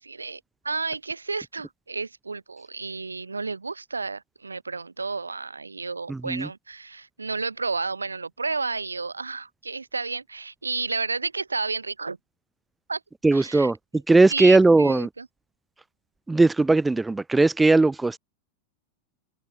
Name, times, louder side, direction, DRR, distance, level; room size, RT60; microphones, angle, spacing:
voice 1, 0.0-12.2 12.9-13.0 13.3-13.7 14.3-15.3, right 4 dB, 80° right, 3.3 m, -31 dB
voice 2, 6.1-6.5 13.2-13.8 14.1-15.1 16.3-18.2, right 3 dB, 10° right, 0.5 m, -18 dB
figure-of-eight pair, 90°, 0 cm